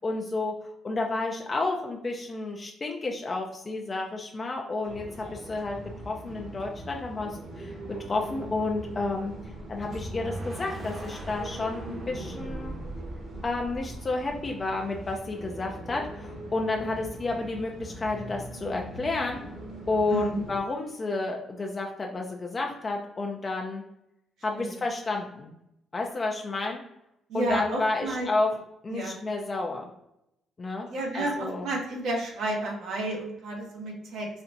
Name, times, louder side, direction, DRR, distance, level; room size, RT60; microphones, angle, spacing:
voice 1, 0.0-0.6 0.8-5.8 6.1-7.8 8.1-9.3 9.7-12.8 13.4-19.4 19.9-23.8 24.4-25.6 25.9-26.8 27.3-28.5 28.8-29.9 30.6-30.9 31.1-31.6, left 3 dB, 35° left, 1 dB, 0.5 m, -31 dB
sound 1, 4.8-20.6, right 1 dB, 60° right, 1.3 m, -41 dB
sound 2, 9.9-13.9, right 1 dB, 40° right, 0.9 m, -42 dB
voice 2, 20.1-20.4 24.6-24.8 27.3-28.3 28.9-29.2 30.9-34.3, right 1 dB, 80° right, -1 dB, 1.1 m, -31 dB
4.2 x 2.4 x 2.6 m, 0.84 s
cardioid pair, 90°, 0 cm